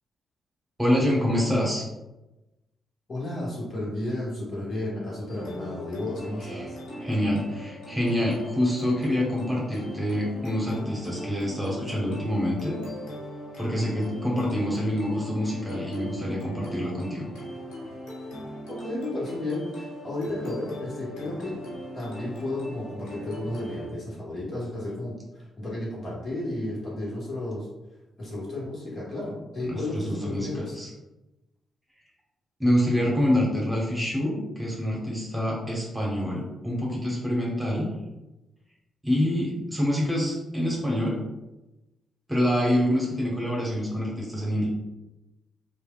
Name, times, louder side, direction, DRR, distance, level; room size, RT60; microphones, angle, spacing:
voice 1, 0.8-1.8 6.5-6.7 7.0-12.8 13.6-17.3 29.7-30.9 32.6-37.9 39.0-41.2 42.3-44.7, equal, 15° right, -4 dB, 1.2 m, -26 dB
voice 2, 3.1-6.8 18.7-21.6 21.9-27.7 28.2-30.7, left 1 dB, 55° left, -6 dB, 1.5 m, -33 dB
sound 1, 5.3-23.9, equal, 75° left, 0.9 m, -39 dB
3.2 x 2.6 x 2.4 m, 1.0 s
hypercardioid pair, 40°, 0 cm